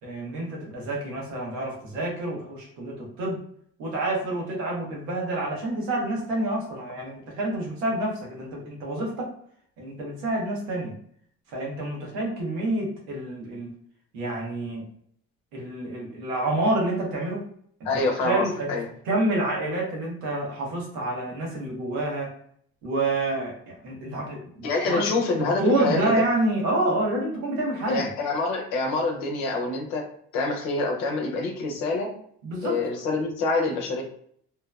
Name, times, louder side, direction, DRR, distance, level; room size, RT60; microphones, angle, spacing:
voice 1, 0.0-3.4 3.8-9.3 9.8-10.9 11.5-13.7 14.1-14.8 15.5-17.4 17.9-18.7 19.0-22.3 22.8-25.1 25.4-28.1 32.4-32.8, right 1 dB, 85° right, -2 dB, 1.0 m, -28 dB
voice 2, 17.8-18.8 24.6-26.2 27.9-30.1 30.3-32.1 32.6-34.0, left 3 dB, 85° left, 1 dB, 0.8 m, -26 dB
2.9 x 2.0 x 2.3 m, 0.63 s
hypercardioid pair, 65°, 33 cm